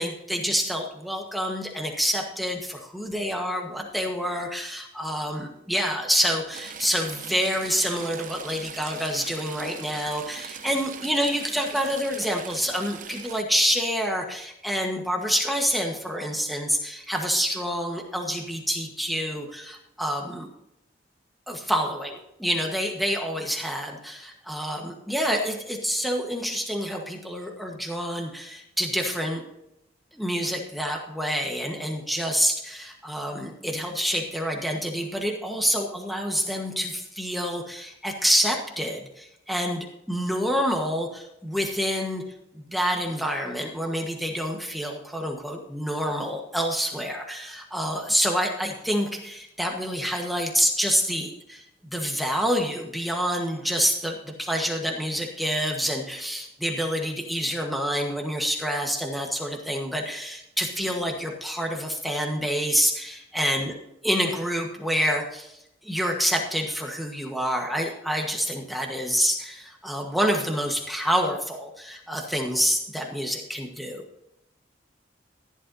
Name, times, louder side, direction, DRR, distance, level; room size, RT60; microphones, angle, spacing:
voice 1, 0.0-20.5 21.5-29.4 30.1-42.2 42.5-63.7 64.0-74.0, equal, ahead, 1 dB, 1.3 m, -27 dB
Stream / Trickle dribble, 6.5-13.4, right 7 dB, 45° right, 0.7 m, -41 dB
15.0 x 11.0 x 2.8 m, 0.82 s
head